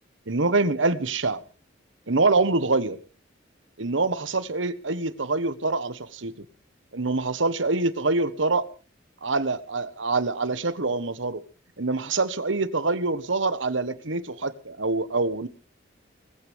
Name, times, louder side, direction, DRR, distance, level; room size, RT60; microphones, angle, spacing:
voice 1, 0.3-1.4 2.1-3.0 3.8-6.3 6.9-8.7 9.2-11.4 11.8-15.5, right 3 dB, 75° right, 14 dB, 1.4 m, -25 dB
19.5 x 15.0 x 3.5 m, 0.38 s
head